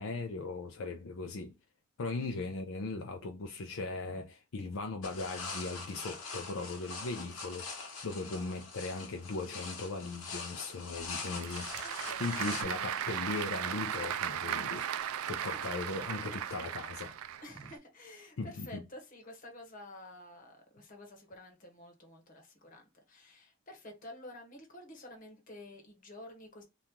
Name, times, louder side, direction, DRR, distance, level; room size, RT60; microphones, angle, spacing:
voice 1, 0.0-1.5 2.0-11.7 12.2-14.9 15.3-17.1 18.4-18.8, left 3 dB, 70° left, 0.5 m, -38 dB
sound 1, 5.0-12.6, left 4 dB, 85° left, 1.1 m, -43 dB
Applause / Crowd, 11.0-17.7, right 9 dB, 75° right, 0.3 m, -37 dB
voice 2, 11.8-12.7 15.5-15.6 17.4-26.6, left 1 dB, 35° left, 1.0 m, -50 dB
2.9 x 2.4 x 3.5 m
head